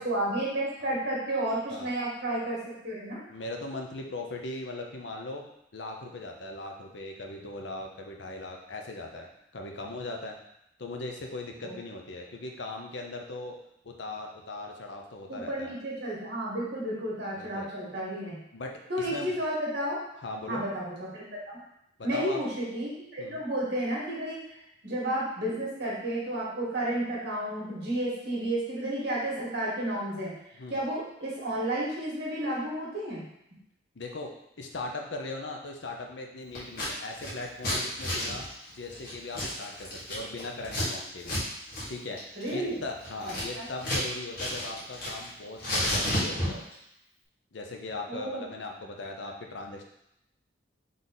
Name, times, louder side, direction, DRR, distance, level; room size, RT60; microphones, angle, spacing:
voice 1, 0.0-3.2 11.6-11.7 15.3-18.4 18.9-20.0 20.5-21.6 22.0-24.4 24.8-30.3 30.7-33.2 42.4-42.7 43.5-43.7 48.1-48.4, right 1 dB, 65° right, -5 dB, 1.7 m, -32 dB
voice 2, 3.3-5.4 5.7-10.4 10.8-13.5 13.8-15.7 17.3-17.7 18.5-19.4 20.2-20.6 22.1-22.4 23.2-23.4 30.6-30.8 33.9-34.3 34.6-38.5 38.7-41.4 41.9-42.2 42.5-46.7 47.5-49.8, left 2 dB, 75° left, 2 dB, 0.7 m, -39 dB
Scissors, 36.5-36.9 37.2-40.9 41.2-41.4 41.7-41.9 42.2-44.1 44.3-45.3 45.6-46.7, left 1 dB, 55° left, 1.7 m, -31 dB
4.1 x 3.4 x 3.9 m, 0.81 s
head